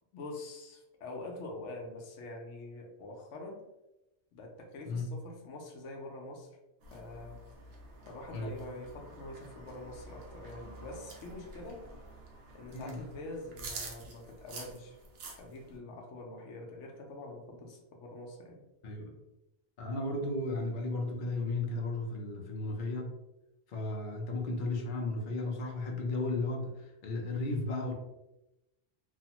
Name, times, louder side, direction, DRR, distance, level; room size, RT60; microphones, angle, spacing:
voice 1, 0.1-3.6 4.3-6.5 6.9-7.4 8.1-11.8 12.5-15.0 15.4-18.6, left 2 dB, 75° left, 1 dB, 0.9 m, -45 dB
sound 1, 6.8-15.8, right 3 dB, 70° right, 0.9 m, -48 dB
voice 2, 19.8-23.1 23.7-27.9, left 2 dB, 55° left, 0 dB, 0.6 m, -34 dB
2.9 x 2.0 x 2.8 m, 0.95 s
omnidirectional pair, 1.2 m